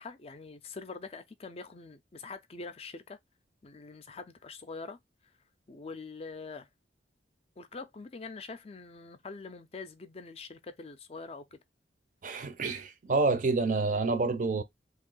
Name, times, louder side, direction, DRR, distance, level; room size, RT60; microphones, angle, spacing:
voice 1, 0.0-3.2 3.6-5.0 5.7-6.7 7.6-11.6, left 4 dB, 35° left, 0.4 m, -44 dB
voice 2, 12.2-14.6, right 3 dB, 45° right, 0.5 m, -28 dB
2.9 x 2.6 x 3.7 m
head